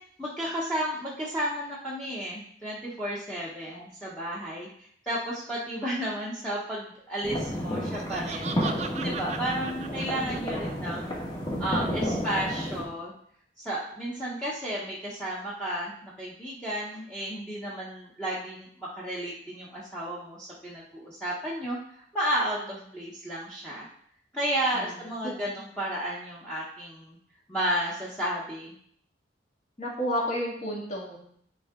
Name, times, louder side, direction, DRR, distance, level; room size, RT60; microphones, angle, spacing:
voice 1, 0.2-4.7 5.1-8.6 9.0-11.2 11.6-13.1 13.6-18.7 18.9-23.9 24.3-27.2 27.5-28.7, right 1 dB, 5° left, -7 dB, 1.0 m, -32 dB
sound 1, 7.2-12.8, equal, 25° left, 1.6 m, -31 dB
Laughter, 7.7-10.9, right 5 dB, 35° right, 0.5 m, -38 dB
voice 2, 29.8-31.2, equal, 40° left, -2 dB, 2.0 m, -31 dB
10.0 x 4.6 x 3.8 m, 0.64 s
head